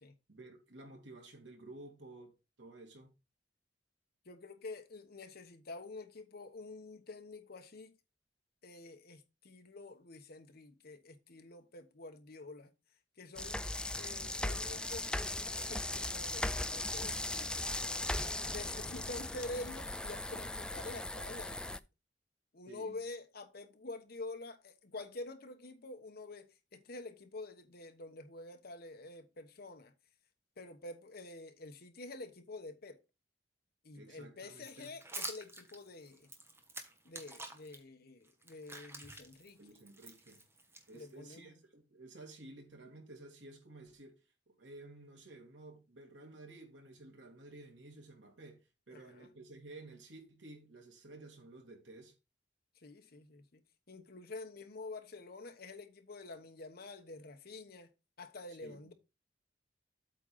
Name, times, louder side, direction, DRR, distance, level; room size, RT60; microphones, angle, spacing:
voice 1, 0.3-3.1 22.7-23.0 33.9-34.9 39.6-40.4 40.9-44.2 44.5-52.1 58.6-58.8, right 2 dB, 80° right, 2.7 m, -53 dB
voice 2, 4.2-7.9 8.6-12.7 13.2-13.6 14.0-15.1 15.6-18.0 18.5-21.8 22.5-29.9 30.6-33.0 33.8-36.3 37.0-39.6 40.9-41.6 48.9-49.3 52.7-57.9 58.2-58.9, left 2 dB, 60° left, 1.1 m, -48 dB
sound 1, 13.4-21.8, left 1 dB, 5° left, 0.3 m, -38 dB
sound 2, 34.6-37.8 38.2-41.3, right 2 dB, 15° right, 1.3 m, -48 dB
8.3 x 3.8 x 5.6 m
head